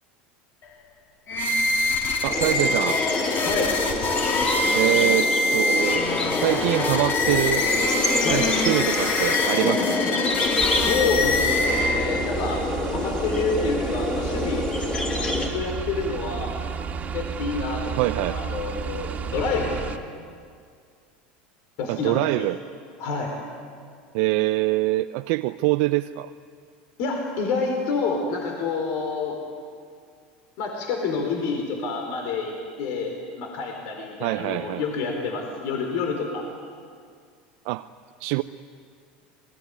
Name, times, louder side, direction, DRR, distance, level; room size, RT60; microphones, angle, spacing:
sound 1, 1.3-12.3, left 2 dB, 45° left, 4.3 m, -24 dB
voice 1, 2.2-3.0 4.7-7.7 8.3-10.0 18.0-18.4 21.9-22.6 24.1-26.3 34.2-34.8 37.7-37.9 38.2-38.4, right 19 dB, 65° right, 9 dB, 0.6 m, -24 dB
sound 2, 2.3-15.5, left 2 dB, 20° left, 5.3 m, -27 dB
voice 2, 3.4-3.8 8.2-8.5 10.7-12.6 12.9-14.7 15.3-16.6 17.1-19.8 21.8-22.5 23.0-23.3 27.0-29.4 30.6-36.4, left 4 dB, 65° left, 2 dB, 4.5 m, -28 dB
sound 3, 10.6-20.0, right 6 dB, 30° right, 2.3 m, -32 dB
27.0 x 20.5 x 9.5 m, 2.2 s
hypercardioid pair, 100°, 5 cm